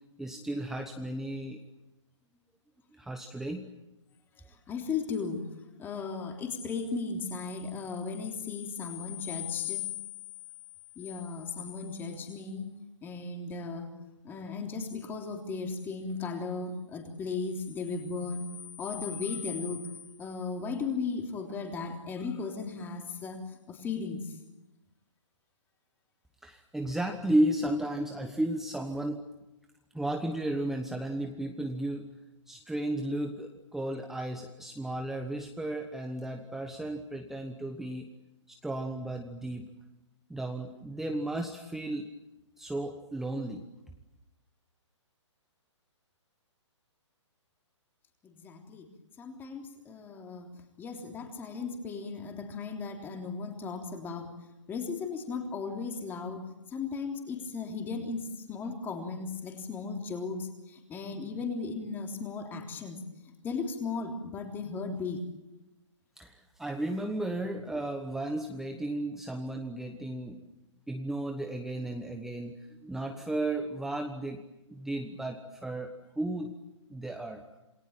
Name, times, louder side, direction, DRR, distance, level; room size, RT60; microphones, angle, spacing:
voice 1, 0.2-1.6 3.0-3.7 26.4-29.2 29.9-32.1 32.5-38.1 38.5-39.7 40.3-42.1 42.6-43.6 66.2-70.4 70.9-74.4 74.7-76.5 76.9-77.4, right 1 dB, ahead, 4 dB, 1.2 m, -34 dB
voice 2, 4.7-5.4 5.8-9.8 11.0-12.7 13.0-13.9 14.2-18.4 18.8-19.9 20.2-23.4 23.7-24.2 48.2-48.9 49.2-50.5 50.8-54.3 54.7-56.4 56.7-63.0 63.4-65.2, left 4 dB, 15° left, 3 dB, 3.4 m, -36 dB
28.0 x 20.0 x 9.0 m, 0.98 s
hypercardioid pair, 155°, 16 cm